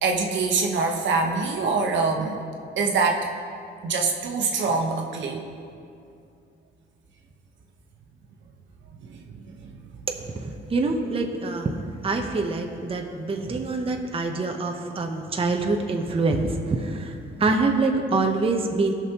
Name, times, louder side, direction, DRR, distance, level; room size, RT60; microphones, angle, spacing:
voice 1, 0.0-2.4 2.8-3.2 3.8-5.4 9.0-9.7, right 4 dB, 70° right, 2 dB, 1.1 m, -25 dB
voice 2, 10.3-18.9, right 3 dB, 30° right, 3 dB, 0.8 m, -25 dB
16.5 x 6.1 x 2.9 m, 2.5 s
cardioid pair, 90°, 20 cm